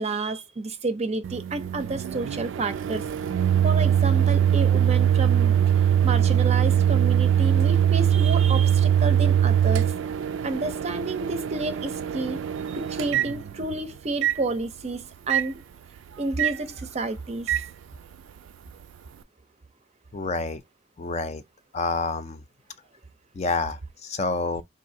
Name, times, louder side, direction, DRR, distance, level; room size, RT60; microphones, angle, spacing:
voice 1, 0.0-3.0 3.6-9.9 10.4-15.6 16.2-17.6, right 3 dB, 35° right, 0.5 m, -30 dB
Microwave oven, 1.2-13.8 14.2-14.4 15.3-15.5 16.4-16.6 17.5-17.6, right 9 dB, 85° right, 0.3 m, -22 dB
voice 2, 20.1-20.6 21.0-21.4 21.7-22.4 23.3-24.6, left 3 dB, 35° left, 0.4 m, -28 dB
4.1 x 2.6 x 2.6 m
head